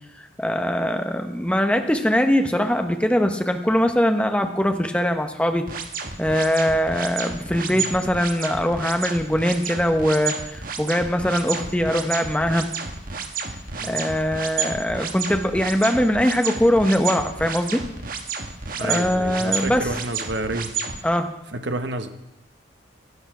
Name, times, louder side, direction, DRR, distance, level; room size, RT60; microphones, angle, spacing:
voice 1, 0.2-5.7 6.2-12.7 13.8-17.8 18.8-19.9 21.0-21.3, equal, 5° left, 6 dB, 1.0 m, -22 dB
sound 1, 5.7-21.0, right 5 dB, 45° right, 1.4 m, -31 dB
voice 2, 13.8-14.1 18.8-20.7 21.5-22.1, right 2 dB, 65° right, 8 dB, 1.1 m, -30 dB
16.5 x 11.0 x 6.1 m, 0.92 s
head